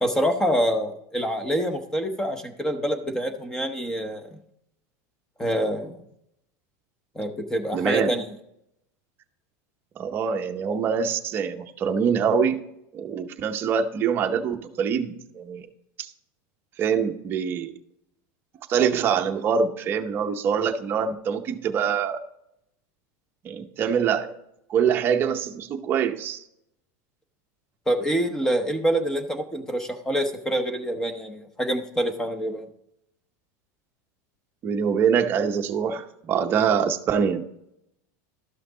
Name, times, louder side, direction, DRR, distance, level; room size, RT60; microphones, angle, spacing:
voice 1, 0.0-4.4 5.4-6.0 7.1-8.3 27.9-32.7, equal, 5° left, 7 dB, 0.8 m, -26 dB
voice 2, 7.7-8.2 10.0-12.6 12.9-15.7 16.0-16.1 16.8-17.7 18.7-22.2 23.4-24.4 24.7-26.4 34.6-37.4, right 7 dB, 25° right, 5 dB, 0.7 m, -24 dB
12.5 x 5.8 x 3.8 m, 0.79 s
supercardioid pair, 170°, 9 cm